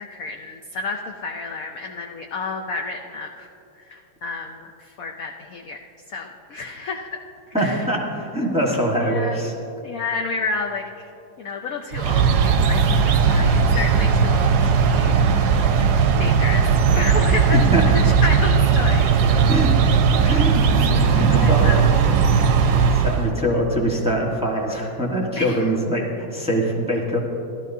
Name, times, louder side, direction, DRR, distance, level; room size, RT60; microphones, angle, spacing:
voice 1, 0.0-3.5 3.8-7.1 7.6-7.9 9.0-9.4 9.8-10.9 11.4-15.6 16.2-16.7 16.9-19.5 20.2-21.8 25.4-25.7, left 3 dB, 70° left, 2 dB, 0.8 m, -31 dB
voice 2, 7.5-9.5 17.5-18.1 19.5-19.7 20.3-22.2 22.9-26.0 26.3-27.2, equal, 5° right, -2 dB, 1.0 m, -23 dB
sound 1, 11.9-23.3, right 6 dB, 65° right, 1.0 m, -17 dB
16.5 x 12.5 x 2.7 m, 2.8 s
omnidirectional pair, 2.1 m